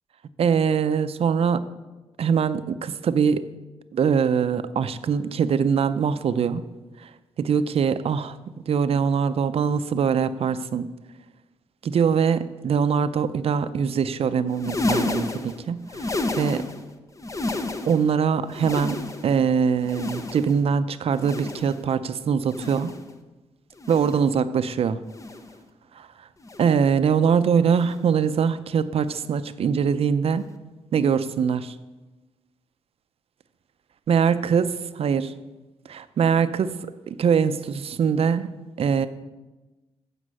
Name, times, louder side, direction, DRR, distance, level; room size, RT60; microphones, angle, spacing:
voice 1, 0.4-1.6 2.2-3.4 3.9-6.6 7.0-7.1 7.4-8.4 8.7-10.9 11.8-16.6 17.8-22.9 23.9-25.0 26.0-26.1 26.6-30.5 30.9-31.7 34.1-34.6 34.9-35.3 35.9-36.7 37.1-38.5 38.8-39.1, right 6 dB, 60° right, 13 dB, 0.5 m, -22 dB
sound 1, 14.5-16.9 17.2-18.1 18.5-19.4 19.8-20.7 21.1-21.9 22.4-23.1 23.8-24.3 25.1-25.6 26.4-26.9 27.8-28.1 29.1-29.3 30.4-30.5, left 2 dB, 30° left, 0.8 m, -31 dB
8.2 x 5.1 x 7.5 m, 1.1 s
cardioid pair, 65°, 11 cm